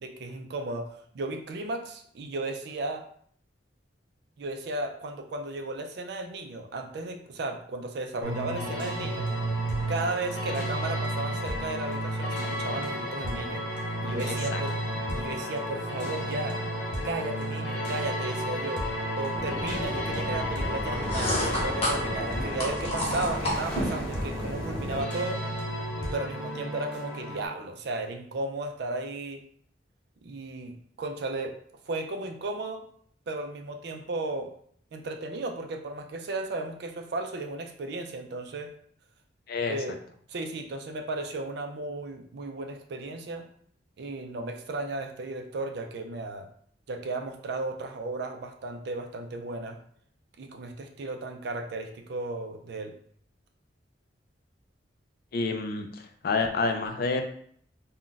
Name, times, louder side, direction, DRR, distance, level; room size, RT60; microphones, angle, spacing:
voice 1, 0.0-3.0 4.4-9.3 9.9-13.6 14.0-14.8 15.2-16.6 17.0-18.9 19.2-25.4 26.1-29.4 30.2-31.6 31.9-32.9 33.3-34.5 34.9-38.7 39.7-40.0 40.3-43.4 44.0-46.5 46.9-49.8 50.4-52.9, right 2 dB, 60° right, 5 dB, 0.4 m, -35 dB
sound 1, 8.2-27.5, equal, 75° left, 0.8 m, -32 dB
voice 2, 14.3-14.6 39.5-39.8 55.3-55.9 56.2-57.2, left 4 dB, 55° left, 5 dB, 0.4 m, -28 dB
sound 2, 19.3-25.0, equal, 5° left, 0.8 m, -36 dB
sound 3, 20.8-24.1, equal, 35° left, 1.0 m, -30 dB
2.3 x 2.2 x 3.8 m, 0.62 s
head